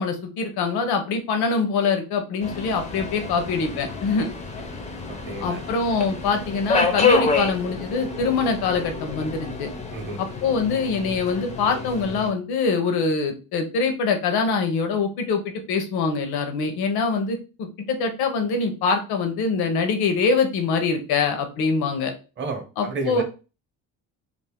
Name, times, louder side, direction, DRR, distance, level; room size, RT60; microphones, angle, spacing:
voice 1, 0.0-4.3 5.4-9.7 10.2-22.1 22.8-23.2, left 4 dB, 80° left, 5 dB, 0.7 m, -24 dB
Subway metro underground, 2.4-12.3, left 3 dB, 20° left, 0.4 m, -28 dB
voice 2, 5.1-5.6 9.9-10.2 22.4-23.2, right 3 dB, 30° right, 4 dB, 0.7 m, -31 dB
2.6 x 2.4 x 3.4 m, 0.33 s
cardioid pair, 170°, 37 cm